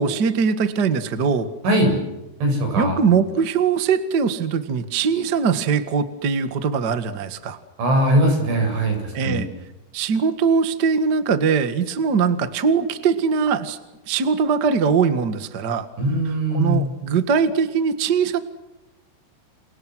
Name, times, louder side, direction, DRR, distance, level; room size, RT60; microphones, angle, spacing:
voice 1, 0.0-1.5 2.8-7.6 9.1-9.5 9.9-13.8 14.1-15.9 16.2-18.4, right 6 dB, 65° right, 9 dB, 1.0 m, -21 dB
voice 2, 2.4-3.0 7.8-9.4 16.0-16.8, right 1 dB, 90° right, 3 dB, 10.5 m, -20 dB
29.5 x 29.5 x 6.4 m, 1.0 s
omnidirectional pair, 5.3 m